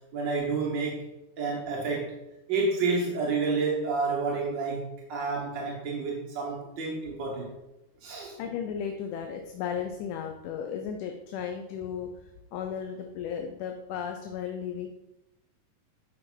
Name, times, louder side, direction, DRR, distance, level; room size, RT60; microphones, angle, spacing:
voice 1, 0.1-1.1 1.4-2.2 2.5-7.5 8.0-8.4, right 4 dB, 55° right, -2 dB, 1.3 m, -29 dB
voice 2, 8.4-14.9, left 7 dB, 80° left, 4 dB, 2.2 m, -35 dB
9.3 x 6.4 x 4.5 m, 0.92 s
omnidirectional pair, 3.7 m